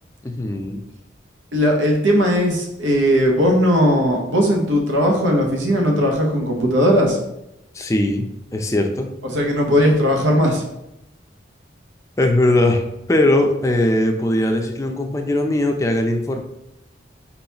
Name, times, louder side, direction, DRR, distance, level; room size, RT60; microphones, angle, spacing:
voice 1, 0.2-0.8 7.7-8.3 8.5-9.1 12.2-12.8 13.1-16.4, left 1 dB, 15° left, 3 dB, 0.4 m, -19 dB
voice 2, 1.5-7.2 9.3-10.6, equal, 90° right, 1 dB, 1.0 m, -18 dB
4.1 x 4.0 x 2.9 m, 0.85 s
head